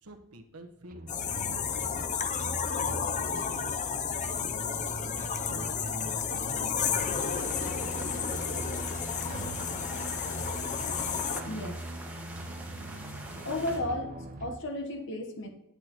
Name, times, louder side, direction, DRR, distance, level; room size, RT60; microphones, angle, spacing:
voice 1, 0.0-3.8 4.2-4.6 5.0-6.7, right 2 dB, 85° right, 5 dB, 1.1 m, -49 dB
sound 1, 0.9-14.6, right 1 dB, 40° right, 0.7 m, -41 dB
sound 2, 1.1-11.4, left 7 dB, 35° left, 0.5 m, -32 dB
sound 3, 6.8-13.8, right 1 dB, 5° right, 1.3 m, -45 dB
voice 2, 11.4-11.8 13.4-15.5, left 1 dB, 55° left, 5 dB, 1.0 m, -34 dB
10.0 x 8.5 x 2.9 m, 0.89 s
head